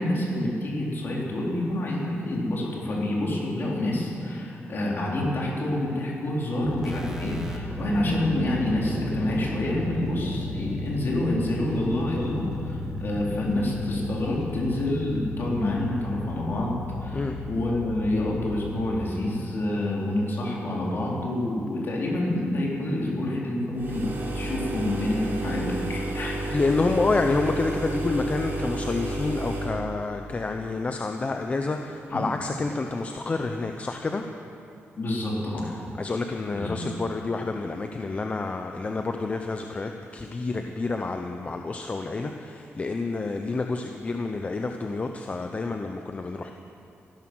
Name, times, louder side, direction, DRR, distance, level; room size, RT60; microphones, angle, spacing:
voice 1, 0.0-17.2 17.5-24.1 24.3-26.5 32.1-32.2 35.0-35.7 36.5-36.8, left 1 dB, 50° left, -3 dB, 3.7 m, -27 dB
sound 1, 6.6-18.7, left 2 dB, 10° right, 1.7 m, -34 dB
sound 2, 23.8-29.8, right 2 dB, 50° right, 3.4 m, -31 dB
voice 2, 26.5-34.2 35.6-46.5, left 3 dB, 30° left, 5 dB, 0.7 m, -28 dB
15.0 x 12.0 x 6.2 m, 2.6 s
wide cardioid pair, 130°, 5 cm